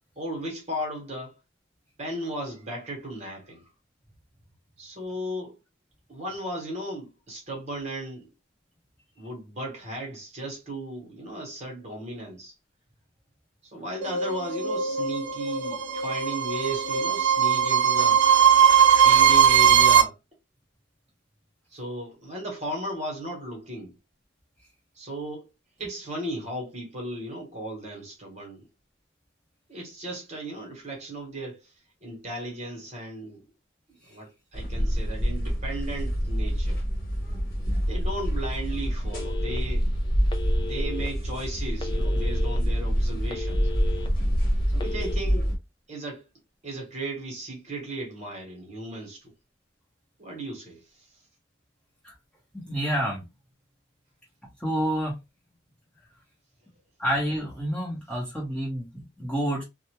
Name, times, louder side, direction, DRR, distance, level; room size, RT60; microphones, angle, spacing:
voice 1, 0.2-1.3 2.0-3.7 4.8-5.5 6.1-8.3 9.2-12.5 13.6-18.2 18.9-20.2 21.7-24.0 24.9-25.5 25.8-28.7 29.7-31.7 32.0-33.4 34.1-36.8 37.9-39.9 40.5-43.7 44.7-45.5 45.9-46.3 46.6-49.3 50.2-51.1, right 1 dB, 35° right, 1.1 m, -36 dB
sound 1, 14.0-20.0, right 8 dB, 75° right, 0.5 m, -19 dB
sound 2, 34.5-45.6, equal, 50° left, 1.0 m, -26 dB
Telephone, 39.1-39.8 40.3-41.1 41.8-42.6 43.0-44.1 44.7-45.1, left 4 dB, 25° left, 0.4 m, -37 dB
voice 2, 52.5-53.2 54.6-55.1 57.0-59.6, equal, 5° left, 0.9 m, -28 dB
2.4 x 2.1 x 2.9 m
head